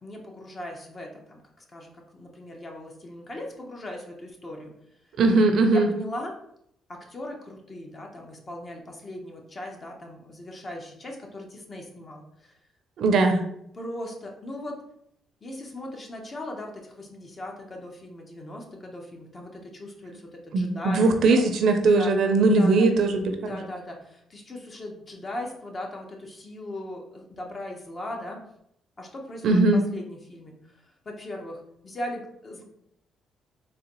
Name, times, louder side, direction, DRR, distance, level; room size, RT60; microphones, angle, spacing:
voice 1, 0.0-4.7 5.7-6.3 6.9-12.5 13.7-14.8 15.4-21.4 21.9-22.1 22.5-23.0 23.4-28.4 29.0-30.8 31.0-32.6, left 1 dB, 35° left, 1 dB, 0.9 m, -39 dB
voice 2, 5.2-5.9 13.0-13.4 20.5-23.6 29.4-29.8, right 3 dB, 70° right, 6 dB, 0.6 m, -20 dB
3.9 x 3.0 x 3.0 m, 0.74 s
cardioid pair, 90°, 0 cm